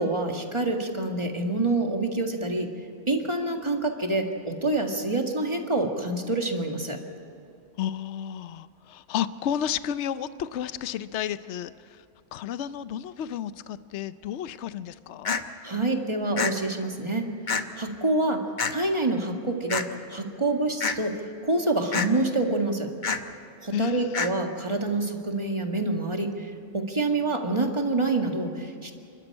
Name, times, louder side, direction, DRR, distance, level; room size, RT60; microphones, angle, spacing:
voice 1, 0.0-2.7 3.1-7.0 15.6-17.3 17.8-18.4 18.7-21.1 21.4-22.9 23.6-28.9, right 2 dB, 25° right, 2 dB, 1.9 m, -27 dB
voice 2, 7.8-12.0 12.3-15.4 23.7-24.3, left 9 dB, 70° left, 14 dB, 0.9 m, -32 dB
sound 1, 15.2-15.4 16.4-16.5 17.5-17.6 18.6-18.7 19.7-19.8 20.8-21.0 21.9-22.1 23.0-23.2 24.1-24.3, left 5 dB, 40° left, 1.0 m, -26 dB
28.0 x 12.5 x 8.8 m, 2.6 s
omnidirectional pair, 1.3 m